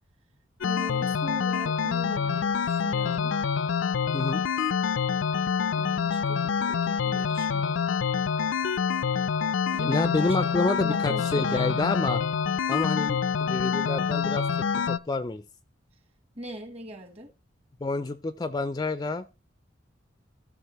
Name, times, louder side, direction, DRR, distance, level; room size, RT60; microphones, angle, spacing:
sound 1, 0.6-15.0, left 6 dB, 85° left, 0.4 m, -26 dB
voice 1, 0.6-3.4 5.7-7.8 9.7-12.0 16.4-17.3, equal, 35° right, 1.2 m, -40 dB
voice 2, 9.9-12.2 12.7-15.4 17.8-19.3, left 3 dB, 20° left, 0.3 m, -28 dB
14.5 x 6.1 x 3.0 m
head